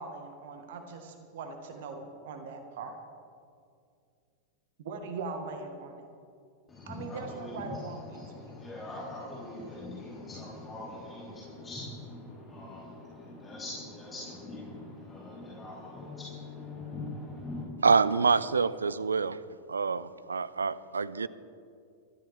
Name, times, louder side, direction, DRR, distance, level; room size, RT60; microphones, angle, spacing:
voice 1, 0.0-3.0 4.8-6.1 6.9-8.5, right 4 dB, 55° right, 6 dB, 1.5 m, -41 dB
voice 2, 6.7-17.7, left 2 dB, 20° left, -7 dB, 3.8 m, -42 dB
voice 3, 17.8-19.4 19.7-21.3, right 5 dB, 75° right, 17 dB, 0.5 m, -26 dB
23.5 x 13.5 x 3.5 m, 2.3 s
figure-of-eight pair, 90°, 0 cm